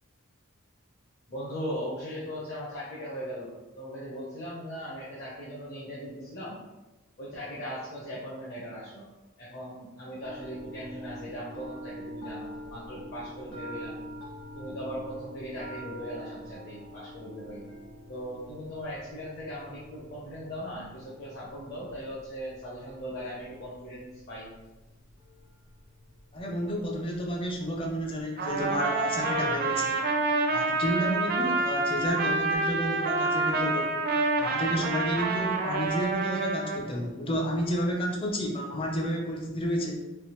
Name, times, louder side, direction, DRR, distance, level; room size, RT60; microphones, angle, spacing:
voice 1, 1.3-6.6 7.2-9.1 9.4-14.0 14.5-17.7 18.1-24.5, equal, 50° left, -7 dB, 0.8 m, -39 dB
sound 1, 10.2-28.2, equal, 70° left, 1.4 m, -46 dB
voice 2, 26.3-30.0 30.5-34.0 34.4-40.1, equal, 25° left, 0 dB, 0.5 m, -31 dB
Trumpet, 28.4-36.8, right 3 dB, 45° right, 0.4 m, -28 dB
3.4 x 2.7 x 3.0 m, 1.1 s
head